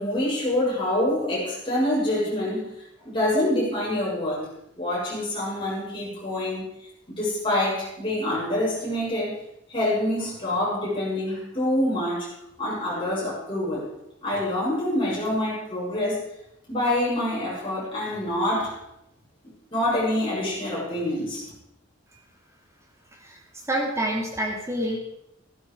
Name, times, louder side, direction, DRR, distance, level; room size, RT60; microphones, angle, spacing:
voice 1, 0.0-4.5 4.8-6.6 7.1-9.4 9.7-12.3 12.6-13.9 14.2-16.3 16.7-18.8 19.7-21.5, left 1 dB, 25° left, -7 dB, 6.9 m, -26 dB
voice 2, 23.7-25.0, right 1 dB, 15° right, -1 dB, 3.0 m, -27 dB
15.0 x 11.5 x 4.9 m, 0.81 s
head